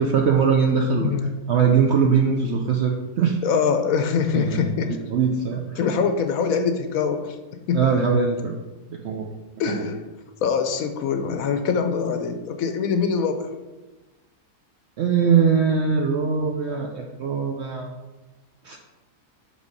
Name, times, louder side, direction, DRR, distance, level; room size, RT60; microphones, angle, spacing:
voice 1, 0.0-1.1 1.5-3.4 4.3-5.8 7.7-8.6 8.9-9.3 9.7-9.8 15.0-17.9 18.6-18.8, right 6 dB, 70° right, 2 dB, 0.6 m, -21 dB
voice 2, 1.0-1.4 3.4-5.0 5.8-7.4 7.7-7.8 9.6-10.0 10.4-13.5, left 6 dB, 70° left, 7 dB, 1.0 m, -23 dB
6.2 x 3.6 x 5.2 m, 1.1 s
omnidirectional pair, 1.7 m